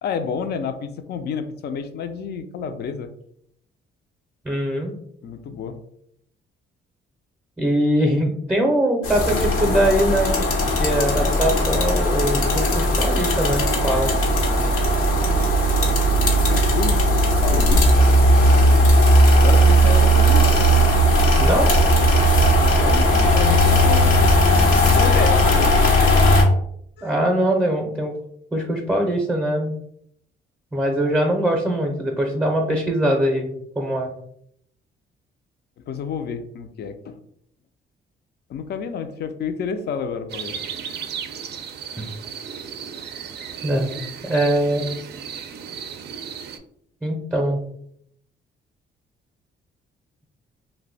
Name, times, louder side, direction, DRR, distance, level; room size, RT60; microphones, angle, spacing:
voice 1, 0.0-3.1 5.2-5.8 16.2-17.1 17.4-18.1 19.4-20.7 22.4-25.9 27.0-27.1 35.8-37.2 38.5-40.6, left 6 dB, 55° left, 9 dB, 0.4 m, -30 dB
voice 2, 4.4-4.9 7.6-10.5 10.8-14.1 21.4-21.7 27.0-28.1 28.5-29.7 30.7-34.1 42.0-42.1 43.6-43.9 44.2-44.8 47.0-47.6, right 1 dB, 10° right, 1 dB, 0.6 m, -22 dB
sound 1, 9.0-26.4, equal, 90° left, 0.8 m, -17 dB
sound 2, 40.3-46.6, right 7 dB, 60° right, 0.4 m, -35 dB
2.6 x 2.1 x 3.9 m, 0.70 s
cardioid pair, 90°, 20 cm